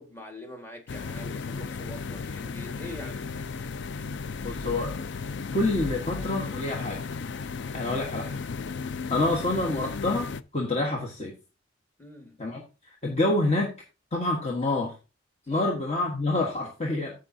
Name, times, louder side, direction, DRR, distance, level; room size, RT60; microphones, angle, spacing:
voice 1, 0.0-3.4 12.0-12.4 15.5-15.6, left 1 dB, 10° left, 1.7 m, -44 dB
sound 1, 0.9-10.4, left 4 dB, 55° left, 0.4 m, -35 dB
voice 2, 4.4-5.0 5.5-7.0 7.7-8.4 9.1-11.3 12.4-12.6 13.0-13.7 14.1-14.9 15.5-17.1, left 2 dB, 30° left, 1.3 m, -27 dB
14.0 x 5.3 x 2.7 m
head